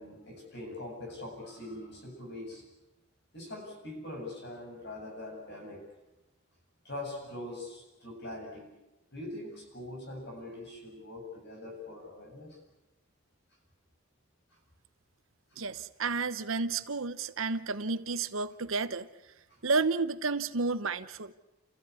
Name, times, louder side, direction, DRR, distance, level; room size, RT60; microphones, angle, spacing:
voice 1, 0.0-2.6 3.3-5.9 6.8-8.7 9.1-12.6, left 1 dB, 50° left, 1 dB, 7.7 m, -42 dB
voice 2, 15.6-19.1 19.6-21.3, right 4 dB, 70° right, 12 dB, 1.0 m, -31 dB
30.0 x 15.0 x 8.5 m, 0.98 s
head